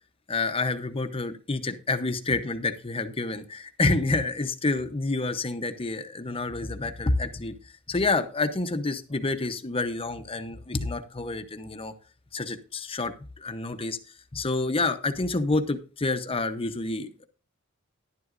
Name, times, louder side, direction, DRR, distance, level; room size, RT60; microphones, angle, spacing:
voice 1, 0.3-11.9 12.3-17.2, left 3 dB, 25° left, 9 dB, 0.8 m, -28 dB
11.0 x 11.0 x 2.6 m, 0.37 s
head